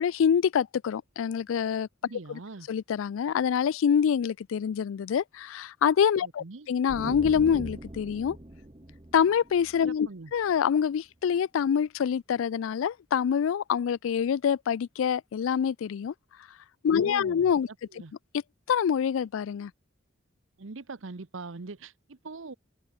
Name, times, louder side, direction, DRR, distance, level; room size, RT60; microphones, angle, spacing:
voice 1, 0.0-1.9 2.3-2.4 2.7-8.4 9.1-16.1 16.8-17.7 18.7-19.7, left 7 dB, 85° left, 0.3 m, -26 dB
voice 2, 2.0-2.7 6.2-6.7 9.9-10.3 16.9-17.4 17.9-18.1 20.6-22.5, right 3 dB, 75° right, 0.9 m, -42 dB
sound 1, 6.9-10.5, right 1 dB, 25° right, 1.1 m, -41 dB
open air
head